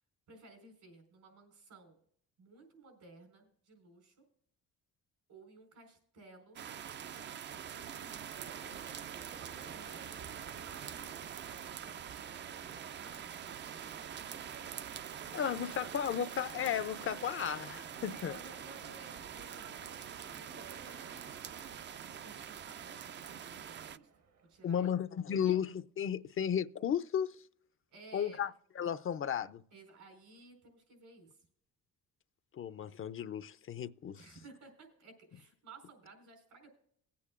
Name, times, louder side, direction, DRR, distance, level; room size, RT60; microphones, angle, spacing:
voice 1, 0.3-2.0 2.4-4.2 5.3-6.6 7.6-9.0 9.3-11.2 13.0-14.1 15.3-15.9 18.1-20.8 22.0-24.1 24.5-25.0 25.4-25.6 27.9-28.4 29.7-31.4 34.2-36.8, right 3 dB, 85° right, 4.4 m, -57 dB
sound 1, 6.6-24.0, right 9 dB, 40° right, 0.4 m, -45 dB
sound 2, 8.3-24.9, right 5 dB, 60° right, 1.0 m, -56 dB
voice 2, 15.3-18.4 24.6-27.4 28.1-28.5 28.8-29.6 32.5-34.2, left 8 dB, 45° left, 0.5 m, -34 dB
20.0 x 8.5 x 2.4 m
cardioid pair, 90°, 30 cm